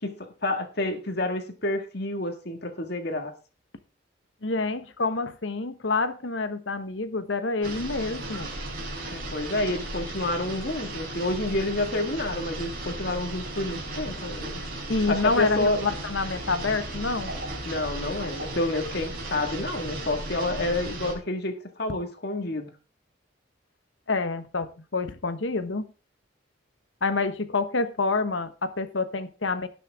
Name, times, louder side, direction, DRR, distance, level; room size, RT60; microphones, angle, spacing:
voice 1, 0.0-3.3 9.1-14.6 15.1-15.8 17.6-22.7, left 2 dB, 55° left, 1.9 m, -29 dB
voice 2, 4.4-8.5 14.9-17.4 24.1-25.9 27.0-29.7, left 3 dB, 75° left, 1.1 m, -27 dB
sound 1, 7.6-21.1, right 1 dB, 50° right, 4.6 m, -35 dB
17.5 x 6.7 x 3.6 m
head